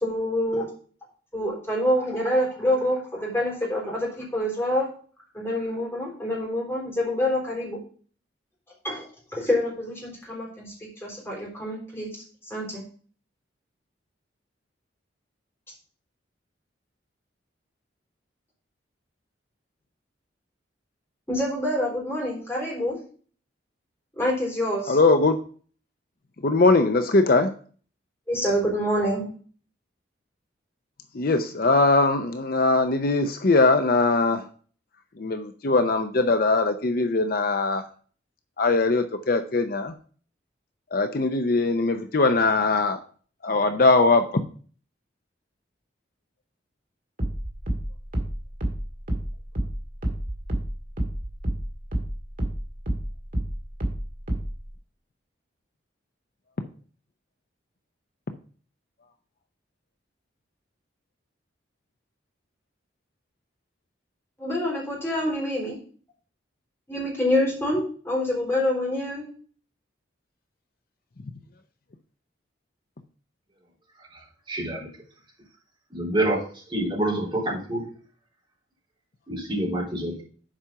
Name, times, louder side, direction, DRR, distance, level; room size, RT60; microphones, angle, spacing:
voice 1, 0.0-0.7 1.3-4.9 5.3-7.8 8.8-10.7 11.0-12.1 12.5-12.8 21.3-23.0 24.2-25.0 28.3-29.3 64.4-65.8 66.9-69.3, left 1 dB, 15° left, -4 dB, 3.6 m, -26 dB
voice 2, 24.9-25.4 26.4-27.5 31.1-34.5 35.2-37.9 38.6-39.9 40.9-43.0 43.4-44.3, left 3 dB, 50° left, 8 dB, 0.6 m, -21 dB
sound 1, 47.2-52.1 52.4-54.6, right 1 dB, 45° right, 1.8 m, -28 dB
voice 3, 74.5-74.9 75.9-76.4 76.7-77.9 79.3-80.2, right 1 dB, 25° right, -5 dB, 3.7 m, -27 dB
7.4 x 5.0 x 5.7 m, 0.42 s
head